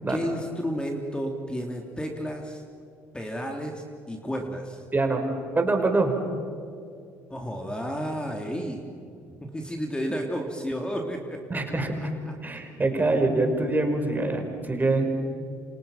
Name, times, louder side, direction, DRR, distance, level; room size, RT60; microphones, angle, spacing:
voice 1, 0.1-2.6 3.1-4.8 7.3-8.8 9.3-11.6, equal, 10° left, 2 dB, 3.3 m, -32 dB
voice 2, 4.9-5.2 5.5-6.2 11.5-11.9 12.4-15.1, right 2 dB, 25° right, 4 dB, 5.3 m, -24 dB
29.5 x 27.0 x 5.9 m, 2.5 s
supercardioid pair, 65°, 8 cm